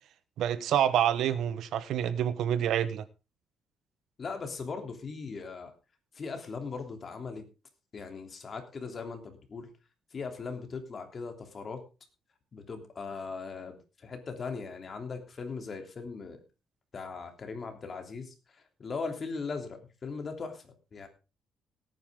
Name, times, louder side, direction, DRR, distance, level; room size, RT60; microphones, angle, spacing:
voice 1, 0.4-3.0, right 10 dB, 75° right, 1.1 m, -27 dB
voice 2, 4.2-5.7 6.1-7.4 7.9-9.7 10.1-11.8 12.5-16.4 16.9-18.3 18.8-21.1, left 4 dB, 35° left, 3.2 m, -39 dB
17.5 x 9.9 x 3.7 m
cardioid pair, 125°, 0 cm